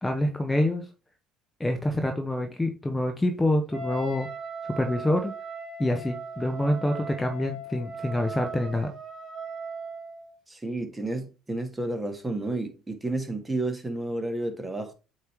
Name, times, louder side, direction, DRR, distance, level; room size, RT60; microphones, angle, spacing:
voice 1, 0.0-0.8 1.6-4.3 4.6-5.3 5.8-8.9, left 1 dB, 15° left, 1.0 m, -26 dB
Wind instrument woodwind instrument, 3.7-10.3, right 2 dB, 40° right, 1.5 m, -38 dB
voice 2, 10.5-14.9, right 2 dB, 15° right, 1.8 m, -31 dB
8.0 x 3.2 x 4.5 m
hypercardioid pair, 65°, 0 cm